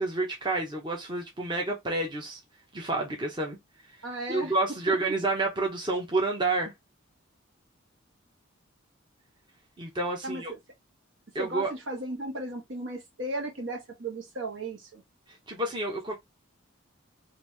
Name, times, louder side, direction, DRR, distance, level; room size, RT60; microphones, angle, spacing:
voice 1, 0.0-2.4 2.7-3.6 4.3-6.7 9.8-10.5 11.3-11.7 15.5-16.1, right 2 dB, 25° right, 0.9 m, -29 dB
voice 2, 4.0-4.6 4.9-5.0 10.2-10.6 11.4-15.0, right 1 dB, 70° right, 1.4 m, -35 dB
3.2 x 2.6 x 3.2 m
head